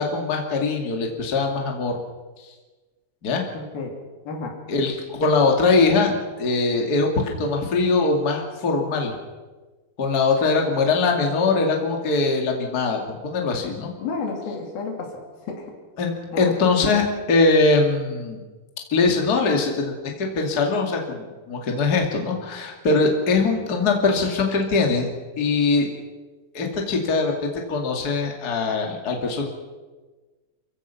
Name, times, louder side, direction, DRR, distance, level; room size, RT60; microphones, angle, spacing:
voice 1, 0.0-2.0 3.2-3.4 4.7-9.2 10.0-13.9 16.0-18.4 18.9-25.1 25.4-25.9 26.5-29.5, left 3 dB, 30° left, 2 dB, 2.5 m, -22 dB
voice 2, 3.5-3.9 4.3-4.5 14.0-15.1 15.5-15.6 16.3-16.5, left 4 dB, 90° left, 1 dB, 4.8 m, -30 dB
29.0 x 15.5 x 5.8 m, 1.3 s
omnidirectional pair, 4.1 m